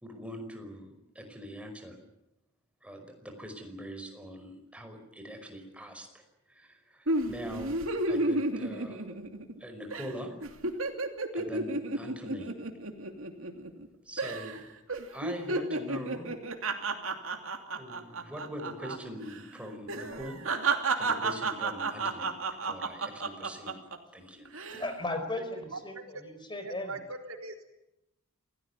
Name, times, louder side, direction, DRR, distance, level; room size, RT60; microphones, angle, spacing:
voice 1, 0.0-2.0 2.8-6.2 6.5-9.2 9.6-10.3 11.3-12.5 14.1-14.6 15.1-16.3 17.8-20.4 21.0-22.3 22.6-23.7 24.1-24.5, equal, 5° right, 4 dB, 5.3 m, -42 dB
sound 1, 7.1-9.6 9.9-10.1 10.4-13.9 14.2-14.6 14.9-19.0 19.2-19.4 19.9-24.0 24.5-24.9, right 3 dB, 70° right, 2.8 m, -32 dB
voice 2, 24.7-27.0, left 2 dB, 20° left, 8 dB, 4.6 m, -36 dB
voice 3, 25.7-26.2 26.6-27.6, right 3 dB, 85° right, 3 dB, 3.9 m, -41 dB
27.5 x 17.5 x 9.7 m, 0.91 s
head